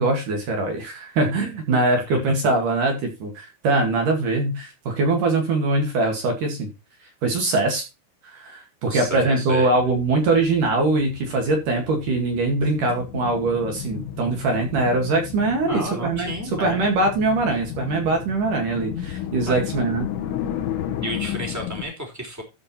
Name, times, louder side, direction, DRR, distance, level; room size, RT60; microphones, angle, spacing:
voice 1, 0.0-6.7 7.2-7.9 8.2-16.3 16.6-20.1, right 2 dB, 50° right, 3 dB, 3.0 m, -22 dB
voice 2, 8.9-9.7 15.6-16.9 19.4-19.6 21.0-22.4, equal, 5° right, 1 dB, 2.2 m, -31 dB
sound 1, 9.8-21.8, left 10 dB, 80° left, 4.0 m, -33 dB
14.0 x 5.1 x 4.4 m, 0.25 s
omnidirectional pair, 5.9 m